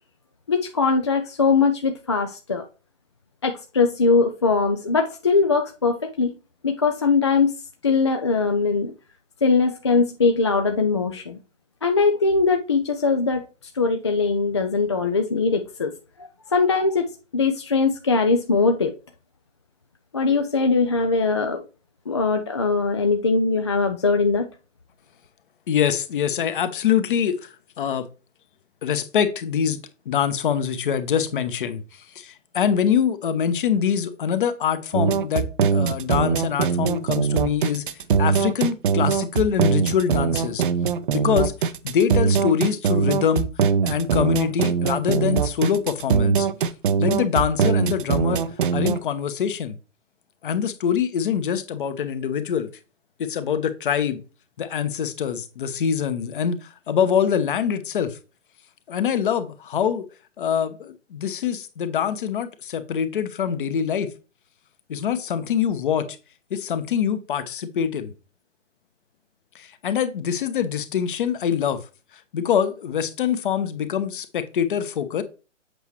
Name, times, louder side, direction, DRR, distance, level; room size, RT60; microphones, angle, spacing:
voice 1, 0.5-2.6 3.4-6.3 6.6-7.5 7.8-8.9 9.4-11.4 11.8-13.4 13.7-15.9 16.5-18.9 20.1-21.6 22.1-24.5, left 4 dB, 25° left, 0.4 m, -21 dB
voice 2, 25.7-28.1 28.8-29.8 30.1-35.4 35.7-37.8 38.2-40.6 41.1-41.5 41.8-43.5 43.8-46.5 47.0-48.4 48.7-49.7 50.4-52.7 53.2-54.2 54.6-58.2 58.9-60.0 60.4-64.1 64.9-66.1 66.5-68.1 69.5-71.8 72.3-75.2, left 8 dB, 45° left, 1.1 m, -24 dB
sound 1, 34.9-49.0, right 6 dB, 45° right, 0.7 m, -22 dB
8.1 x 5.8 x 3.1 m
figure-of-eight pair, 130°, 38 cm